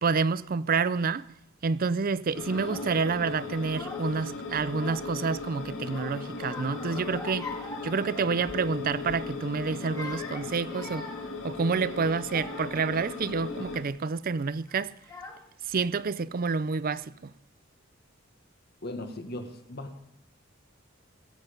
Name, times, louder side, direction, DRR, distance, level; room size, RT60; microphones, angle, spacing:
voice 1, 0.0-1.3 1.6-7.5 7.8-11.1 11.4-14.9 15.7-17.3, right 5 dB, 45° right, 0.5 m, -28 dB
sound 1, 2.3-13.8, left 4 dB, 80° left, 2.7 m, -38 dB
Child speech kid speaking / Crying sobbing, 2.4-2.9 3.6-4.2 4.6-5.4 5.8-8.7 9.0-9.3 9.8-12.9 13.5-13.9 14.7-14.8 15.0-15.7, left 3 dB, 20° left, 2.1 m, -43 dB
voice 2, 18.8-20.0, left 1 dB, 55° left, 1.6 m, -38 dB
23.0 x 7.8 x 5.2 m
head